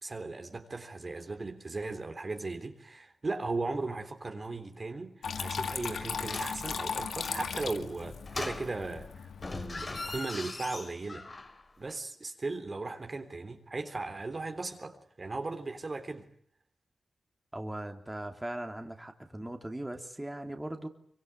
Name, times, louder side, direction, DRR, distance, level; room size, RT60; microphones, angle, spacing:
voice 1, 0.0-11.3 11.8-16.3, right 3 dB, 45° right, 3.5 m, -37 dB
Water tap faucet / Trickle dribble, 5.2-10.2, left 6 dB, 85° left, 2.1 m, -37 dB
sound 1, 6.2-6.7 8.3-9.0 9.4-11.6 11.9-12.0, left 2 dB, 40° left, 3.2 m, -40 dB
voice 2, 17.5-20.9, right 1 dB, 15° right, 3.3 m, -39 dB
24.5 x 24.0 x 9.5 m
cardioid pair, 55°, 0 cm